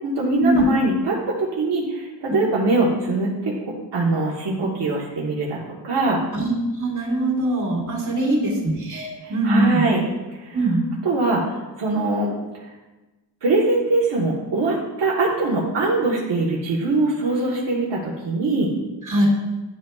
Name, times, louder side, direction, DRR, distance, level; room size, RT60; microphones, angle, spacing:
voice 1, 0.0-5.6 5.8-6.2 8.2-8.5 9.2-10.0 10.4-10.6 11.0-12.3 13.4-18.7, right 2 dB, 85° right, -4 dB, 1.4 m, -22 dB
voice 2, 6.7-9.9 10.5-10.8 19.0-19.3, right 2 dB, 45° right, -3 dB, 2.5 m, -22 dB
11.0 x 5.2 x 2.4 m, 1.1 s
wide cardioid pair, 90°, 41 cm